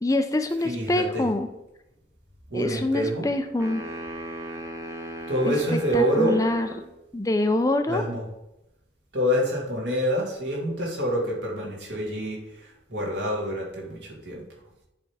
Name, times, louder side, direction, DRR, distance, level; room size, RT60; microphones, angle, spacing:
voice 1, 0.0-1.5 2.5-3.8 5.4-6.7 7.1-8.0, left 2 dB, 20° left, 8 dB, 0.4 m, -25 dB
voice 2, 0.6-1.2 2.5-3.3 5.3-6.4 7.9-8.2 9.1-12.4 12.9-14.0 14.2-14.4, equal, 75° right, -2 dB, 2.4 m, -26 dB
sound 1, 3.6-6.9, right 1 dB, 15° right, 1.0 m, -37 dB
10.0 x 3.4 x 4.8 m, 0.89 s
head